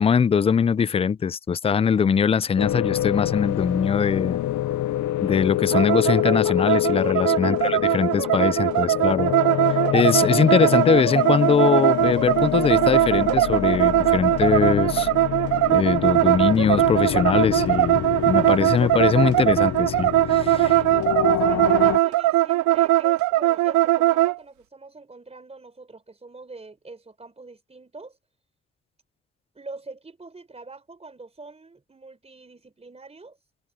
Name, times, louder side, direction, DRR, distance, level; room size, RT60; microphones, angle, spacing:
voice 1, 0.0-4.4 5.2-9.3 9.7-15.1 15.7-20.6, left 6 dB, 20° left, 0.3 m, -22 dB
sound 1, 2.6-22.0, left 14 dB, 70° left, 0.9 m, -27 dB
sound 2, 5.7-24.4, right 16 dB, 80° right, 0.5 m, -20 dB
voice 2, 20.5-20.9 21.4-28.2 29.5-33.4, right 3 dB, 20° right, 4.1 m, -43 dB
cardioid pair, 90°, 30 cm